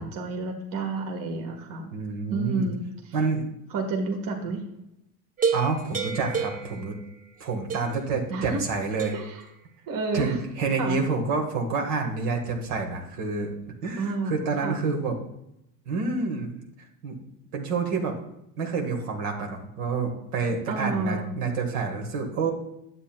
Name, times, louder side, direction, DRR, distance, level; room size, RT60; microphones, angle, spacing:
voice 1, 0.0-1.9 2.3-3.1 3.7-4.6 8.3-8.6 9.1-9.4 9.9-10.4 10.8-11.0 14.0-14.8 20.7-21.3, right 3 dB, 45° right, 3 dB, 1.4 m, -30 dB
voice 2, 1.9-2.7 3.1-3.5 5.5-7.0 7.4-9.1 10.1-13.5 13.8-15.2 15.9-16.6 17.0-17.2 17.5-18.2 18.6-22.5, right 4 dB, 75° right, 2 dB, 1.6 m, -28 dB
sound 1, 5.4-7.4 7.7-8.2 9.0-9.4, right 6 dB, 20° right, 0.8 m, -30 dB
9.9 x 7.5 x 2.2 m, 0.82 s
hypercardioid pair, 95°, 46 cm